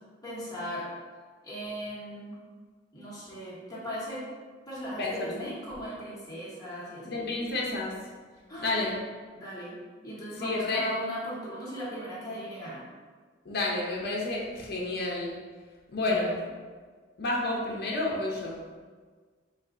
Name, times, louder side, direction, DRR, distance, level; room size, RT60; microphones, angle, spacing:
voice 1, 0.2-0.9 1.4-2.4 2.9-4.3 4.7-7.3 8.5-8.8 9.3-12.8 16.0-16.4, equal, 20° left, -7 dB, 1.1 m, -38 dB
voice 2, 5.0-5.4 7.1-8.1 8.6-9.0 10.4-10.9 13.4-15.4 15.9-16.4 17.2-18.6, left 2 dB, 55° left, -3 dB, 0.6 m, -30 dB
4.2 x 2.4 x 3.6 m, 1.5 s
head